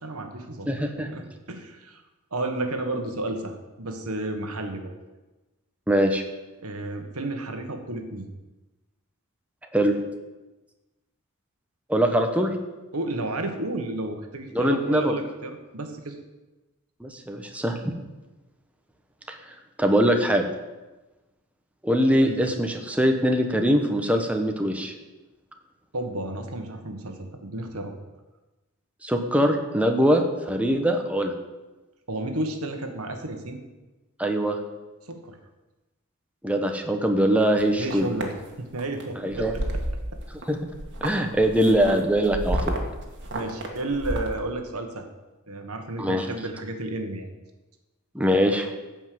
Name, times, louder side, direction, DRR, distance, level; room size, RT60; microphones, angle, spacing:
voice 1, 0.0-0.7 1.0-2.0 2.3-4.9 6.6-8.3 12.9-16.2 22.2-22.4 25.9-27.9 32.1-33.6 35.1-35.4 37.8-39.6 43.3-45.1 45.5-47.3, right 2 dB, 90° right, 5 dB, 1.6 m, -32 dB
voice 2, 0.7-1.1 5.9-6.2 9.7-9.9 11.9-12.5 14.5-15.1 17.0-17.9 19.3-19.4 19.8-20.4 21.8-24.9 29.0-31.3 34.2-34.6 36.4-38.1 39.2-39.5 40.5-40.6 41.0-42.8 46.0-46.2 48.1-48.7, equal, 5° right, 3 dB, 1.1 m, -22 dB
sound 1, 37.6-38.3 38.8-39.0 39.3-40.4 40.7-44.4, right 1 dB, 55° right, 1.8 m, -31 dB
14.5 x 5.4 x 7.8 m, 1.1 s
head